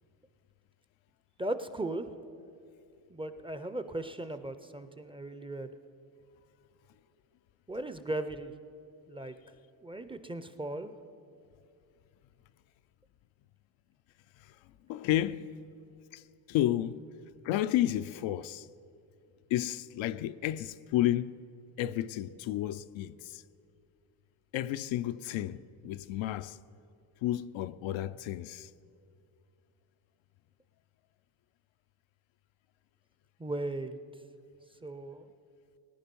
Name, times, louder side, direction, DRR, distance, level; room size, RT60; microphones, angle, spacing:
voice 1, 1.4-2.1 3.1-5.7 7.7-8.5 9.1-9.3 9.8-10.9 33.4-34.0 34.8-35.3, right 2 dB, 10° right, 0.5 m, -37 dB
voice 2, 14.9-15.5 16.1-16.2 16.5-17.0 17.4-18.7 19.5-21.3 21.8-23.4 24.5-26.6 27.2-28.7, left 13 dB, 75° left, 0.6 m, -31 dB
19.0 x 10.0 x 5.3 m
cardioid pair, 95°, 47 cm